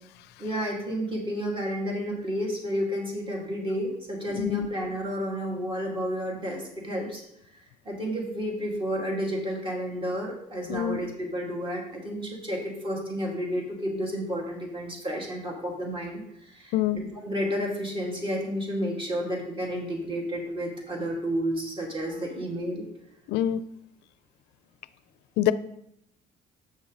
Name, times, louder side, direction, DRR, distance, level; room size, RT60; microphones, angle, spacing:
voice 1, 0.4-7.2 7.8-22.9, equal, 30° right, -1 dB, 2.3 m, -31 dB
voice 2, 4.4-4.7 10.7-11.0 16.7-17.0 23.3-23.6 25.4-25.5, left 12 dB, 85° left, 16 dB, 0.4 m, -25 dB
7.5 x 6.2 x 3.9 m, 0.76 s
cardioid pair, 110°, 17 cm